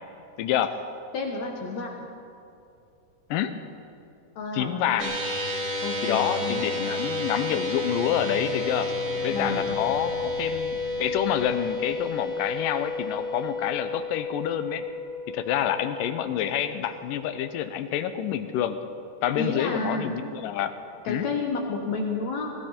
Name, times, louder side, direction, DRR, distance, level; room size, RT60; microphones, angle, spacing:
voice 1, 0.4-0.7 3.3-3.5 4.5-5.2 6.0-8.9 9.2-14.8 15.3-18.8 19.2-20.7 21.1-21.3, left 10 dB, 80° left, 10 dB, 2.3 m, -28 dB
voice 2, 1.1-2.1 4.4-5.1 5.8-6.6 9.3-9.7 19.4-20.1 21.0-22.5, left 3 dB, 60° left, 1 dB, 2.2 m, -30 dB
sound 1, 5.0-17.5, left 2 dB, 35° right, 1.3 m, -31 dB
sound 2, 7.6-13.1 13.4-13.5 13.7-13.8 14.1-14.2, left 4 dB, 90° right, 7.0 m, -43 dB
20.5 x 16.0 x 4.4 m, 2.6 s
omnidirectional pair, 4.0 m